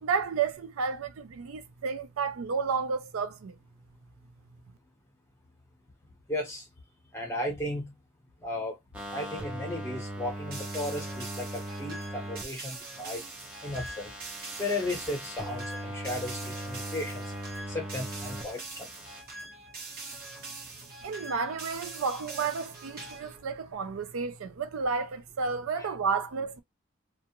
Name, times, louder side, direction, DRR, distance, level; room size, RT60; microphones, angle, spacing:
voice 1, 0.0-3.5 21.0-26.6, right 5 dB, 85° right, 0.4 m, -31 dB
voice 2, 6.3-6.6 7.1-7.9 8.4-8.8 9.1-13.2 13.6-14.1 14.6-17.2 17.7-18.9 25.8-25.9, left 1 dB, 15° left, 0.9 m, -35 dB
sound 1, 8.9-12.4 12.8-18.4 18.7-19.2, right 1 dB, 5° right, 0.6 m, -39 dB
sound 2, 10.5-23.4, right 3 dB, 45° right, 1.0 m, -43 dB
2.4 x 2.4 x 2.9 m
head